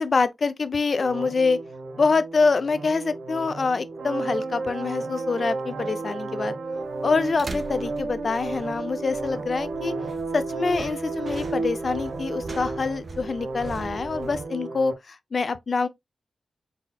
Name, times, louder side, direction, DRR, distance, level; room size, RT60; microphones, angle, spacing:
voice 1, 0.0-1.6 2.0-6.6 7.0-9.9 10.3-15.9, left 4 dB, 45° left, 0.4 m, -25 dB
sound 1, 0.9-14.9, right 3 dB, 90° right, 0.8 m, -32 dB
sound 2, 6.7-14.4, right 3 dB, 40° right, 0.6 m, -42 dB
4.3 x 4.1 x 2.2 m
wide cardioid pair, 160°, 0 cm